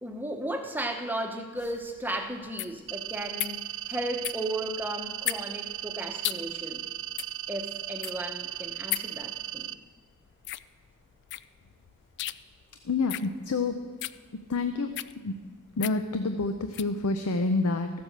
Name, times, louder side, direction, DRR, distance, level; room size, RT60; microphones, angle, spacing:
voice 1, 0.0-6.9 7.5-9.8, right 1 dB, 10° right, 4 dB, 0.9 m, -35 dB
sound 1, 1.6-17.0, left 15 dB, 50° left, 0.3 m, -38 dB
sound 2, 2.9-9.7, right 13 dB, 60° right, 0.4 m, -37 dB
voice 2, 12.8-13.8 14.5-15.3 15.8-17.9, left 3 dB, 80° left, 7 dB, 0.6 m, -28 dB
14.0 x 7.8 x 6.6 m, 1.4 s
head